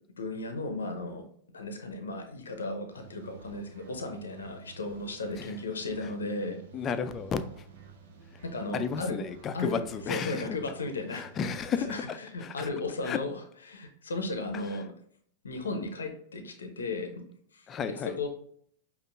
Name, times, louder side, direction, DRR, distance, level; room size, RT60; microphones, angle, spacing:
voice 1, 0.2-1.2 1.5-6.6 8.4-9.2 9.5-11.3 11.9-13.4 13.7-14.9 15.4-17.2 17.5-17.7 18.0-18.3, left 2 dB, 85° left, 5 dB, 0.5 m, -35 dB
sound 1, 2.9-12.0, right 5 dB, 70° right, 0.7 m, -51 dB
voice 2, 6.7-7.6 8.7-10.5 11.1-12.7 13.0-13.2 17.7-18.2, left 6 dB, 30° left, 11 dB, 0.3 m, -33 dB
5.1 x 2.4 x 2.5 m, 0.63 s
hypercardioid pair, 100°, 0 cm